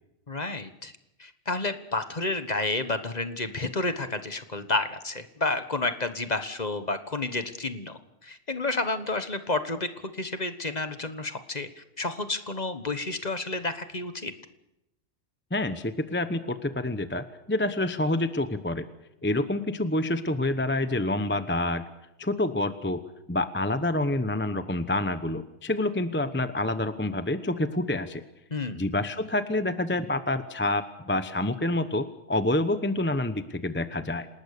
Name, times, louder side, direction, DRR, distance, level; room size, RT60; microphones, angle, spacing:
voice 1, 0.3-0.9 1.2-14.3 28.5-28.9, left 2 dB, 30° left, 9 dB, 1.4 m, -30 dB
voice 2, 15.5-18.9 19.2-21.8 22.2-23.0 23.3-28.2 28.7-34.3, left 1 dB, 10° left, 10 dB, 0.9 m, -27 dB
28.0 x 19.5 x 6.8 m, 0.89 s
omnidirectional pair, 1.4 m